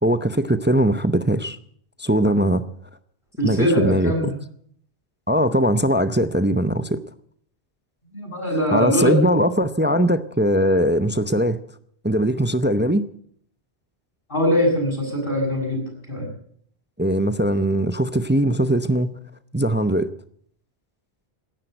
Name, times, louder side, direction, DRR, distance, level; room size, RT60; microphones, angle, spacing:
voice 1, 0.0-1.6 2.0-2.6 3.4-4.1 5.3-7.0 8.5-11.6 12.0-13.0 17.0-19.2 19.5-20.1, right 1 dB, 15° right, 0.5 m, -20 dB
voice 2, 3.4-4.3 8.1-9.4 9.8-9.9 14.3-16.3, equal, 55° left, 6.5 m, -22 dB
16.5 x 10.5 x 7.8 m
omnidirectional pair, 1.1 m